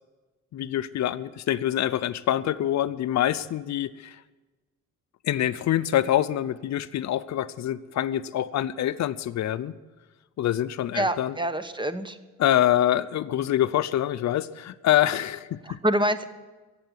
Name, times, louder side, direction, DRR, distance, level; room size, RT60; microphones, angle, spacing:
voice 1, 0.5-4.2 5.2-9.7 10.4-11.4 12.4-15.8, left 12 dB, 65° left, 14 dB, 0.6 m, -25 dB
voice 2, 10.9-12.2 15.7-16.3, right 1 dB, 15° right, 11 dB, 1.1 m, -26 dB
17.5 x 7.7 x 9.5 m, 1.2 s
cardioid pair, 90°, 30 cm